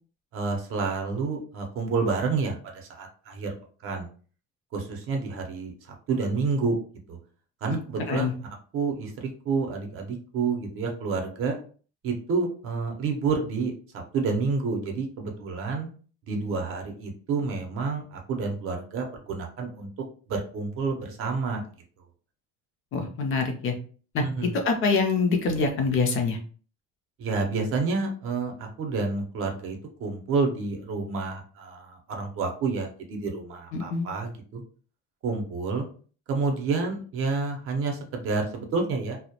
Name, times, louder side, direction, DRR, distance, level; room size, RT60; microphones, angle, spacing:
voice 1, 0.3-3.5 3.8-4.1 4.7-6.8 7.1-7.2 7.6-8.3 8.7-11.6 12.0-15.9 16.3-19.9 20.3-21.6 24.2-24.6 27.2-34.6 35.2-35.9 36.3-39.2, right 4 dB, 45° right, 3 dB, 0.6 m, -29 dB
voice 2, 22.9-23.7 24.1-26.4 33.7-34.1, left 4 dB, 45° left, 4 dB, 0.5 m, -25 dB
2.2 x 2.0 x 2.7 m, 0.41 s
cardioid pair, 155°, 30 cm